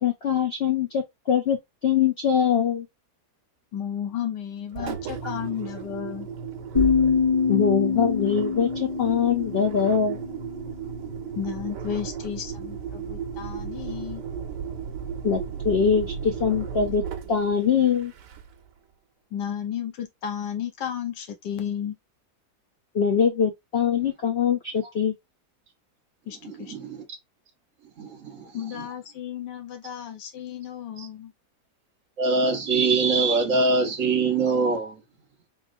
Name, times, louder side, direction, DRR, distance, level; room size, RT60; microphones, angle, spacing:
voice 1, 0.0-2.9 4.8-5.0 7.5-10.2 15.2-18.1 22.9-25.1, left 7 dB, 65° left, 0.6 m, -23 dB
voice 2, 3.7-6.3 11.3-14.2 19.3-22.0 26.3-26.7 28.5-31.3, left 9 dB, 80° left, 1.5 m, -33 dB
Engine, 4.7-18.7, right 7 dB, 90° right, 1.3 m, -35 dB
sound 1, 6.7-10.6, left 5 dB, 20° left, 1.6 m, -25 dB
voice 3, 26.4-27.0 28.0-28.5 31.0-31.1 32.2-34.9, right 3 dB, 50° right, 1.4 m, -23 dB
4.0 x 3.2 x 2.6 m
omnidirectional pair, 1.8 m